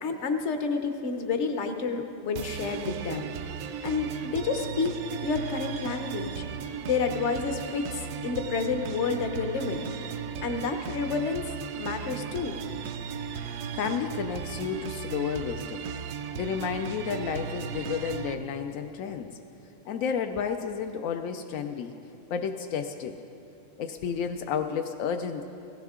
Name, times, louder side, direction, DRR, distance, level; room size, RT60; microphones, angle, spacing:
voice 1, 0.0-3.3 3.8-5.0 5.2-6.4 6.8-9.9 10.4-12.6, left 4 dB, 60° left, 6 dB, 1.2 m, -30 dB
sound 1, 2.4-18.3, right 7 dB, 80° right, 1.0 m, -36 dB
voice 2, 13.7-15.8 16.3-19.4 19.9-21.9 22.3-23.2 23.8-25.4, left 7 dB, 85° left, 6 dB, 1.0 m, -31 dB
16.5 x 15.5 x 3.7 m, 2.8 s
omnidirectional pair, 1.4 m